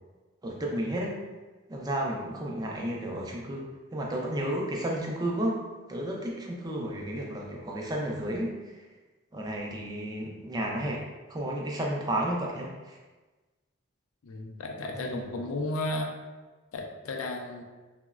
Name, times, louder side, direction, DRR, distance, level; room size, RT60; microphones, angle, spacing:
voice 1, 0.4-1.2 1.7-3.7 3.9-5.6 5.9-8.9 9.3-11.0 11.3-13.0 14.9-15.3, right 1 dB, 20° right, -1 dB, 0.4 m, -32 dB
voice 2, 14.2-16.1 16.7-17.6, left 2 dB, 85° left, 3 dB, 0.4 m, -33 dB
3.8 x 2.0 x 2.3 m, 1.2 s
head